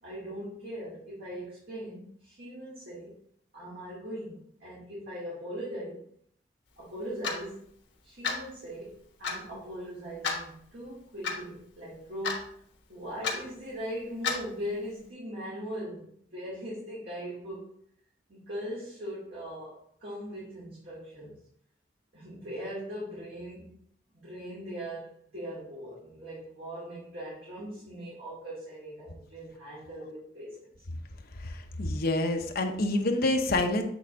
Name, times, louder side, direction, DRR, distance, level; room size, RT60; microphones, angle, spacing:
voice 1, 0.0-3.1 3.5-6.0 6.8-7.7 8.0-12.6 12.9-17.7 18.3-21.4 22.1-23.7 24.1-30.7, equal, 55° right, -8 dB, 2.0 m, -40 dB
Clock, 7.2-7.4 8.2-8.5 9.2-9.4 10.2-10.4 11.2-11.4 12.2-12.5 13.2-13.4 14.2-14.5, left 5 dB, 75° left, 1.3 m, -30 dB
voice 2, 31.4-33.8, left 2 dB, 55° left, 4 dB, 0.8 m, -27 dB
8.2 x 3.7 x 3.6 m, 0.66 s
head